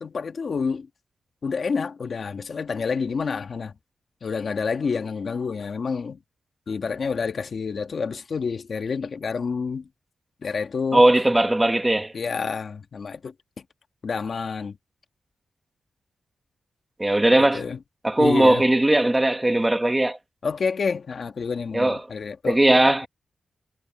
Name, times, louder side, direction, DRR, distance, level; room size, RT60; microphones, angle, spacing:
voice 1, 0.0-0.9 1.4-3.7 4.2-6.2 6.7-9.9 10.4-11.1 12.1-13.3 14.0-14.8 17.5-17.8 18.2-18.6 20.4-22.6, left 5 dB, 50° left, 1.5 m, -28 dB
voice 2, 10.9-12.1 17.0-17.6 18.0-20.2 21.7-22.0 22.5-23.1, right 1 dB, 10° right, 1.3 m, -19 dB
wide cardioid pair, 150°, 0 cm